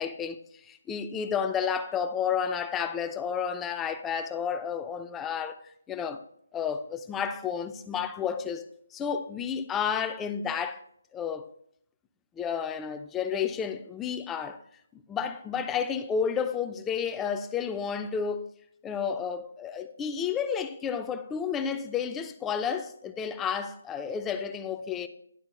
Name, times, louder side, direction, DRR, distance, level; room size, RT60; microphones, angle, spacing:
voice 1, 0.0-5.6 5.9-6.2 6.5-8.6 8.9-10.8 11.1-11.5 12.4-14.6 15.1-18.5 18.8-25.1, left 7 dB, 10° left, 0.3 m, -31 dB
10.5 x 3.7 x 3.7 m
figure-of-eight pair, 165°, 0 cm